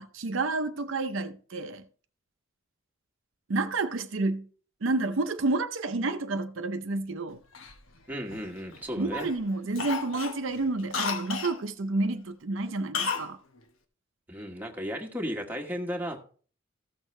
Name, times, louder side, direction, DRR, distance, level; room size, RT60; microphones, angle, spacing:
voice 1, 0.0-1.8 3.5-4.5 4.8-7.4 9.0-13.4, right 3 dB, 70° right, 0.6 m, -30 dB
Cough, 7.5-8.8 9.2-9.4 9.7-11.6 12.9-13.3 13.6-13.7, left 5 dB, 75° left, 1.1 m, -33 dB
voice 2, 8.1-9.3 14.3-16.3, equal, 10° right, 1.4 m, -35 dB
14.5 x 6.4 x 3.2 m
head